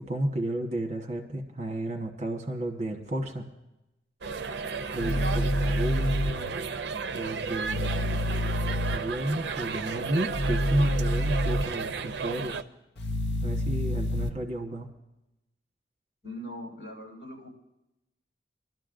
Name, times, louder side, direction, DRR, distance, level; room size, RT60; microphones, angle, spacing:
voice 1, 0.0-3.4 4.9-6.6 7.1-8.2 8.9-12.6 13.4-14.9, right 1 dB, 40° right, 2 dB, 1.2 m, -32 dB
sound 1, 4.2-12.6, right 5 dB, 70° right, 0.5 m, -34 dB
sound 2, 5.0-6.3 7.6-9.0 10.3-11.6 13.0-14.3, equal, 75° left, 0.8 m, -27 dB
voice 2, 16.2-17.5, equal, 60° left, -3 dB, 6.1 m, -41 dB
24.5 x 12.5 x 2.6 m, 0.92 s
head